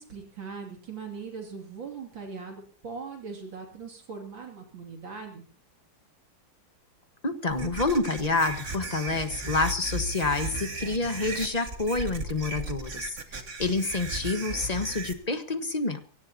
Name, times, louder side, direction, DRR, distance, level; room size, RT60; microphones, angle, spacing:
voice 1, 0.0-5.4, right 5 dB, 80° right, 1 dB, 3.4 m, -40 dB
voice 2, 7.2-13.2 13.6-16.0, left 3 dB, 25° left, 8 dB, 1.3 m, -28 dB
sound 1, 7.5-15.1, right 2 dB, 40° right, 2.0 m, -36 dB
24.0 x 17.5 x 2.9 m, 0.41 s
omnidirectional pair, 2.1 m